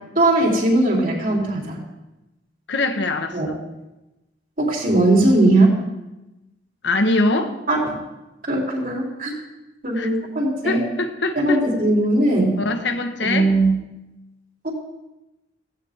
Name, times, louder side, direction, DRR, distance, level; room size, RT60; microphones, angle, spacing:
voice 1, 0.2-1.8 3.3-3.5 4.6-5.8 7.7-8.0 8.5-9.4 9.8-10.8 11.4-12.6 13.2-13.8 14.6-14.7, right 2 dB, 50° right, -1 dB, 3.6 m, -19 dB
voice 2, 2.7-3.6 6.8-7.6 9.9-10.1 10.6-11.6 12.6-13.4, left 2 dB, 90° left, 6 dB, 1.4 m, -23 dB
16.5 x 16.0 x 3.6 m, 1.0 s
head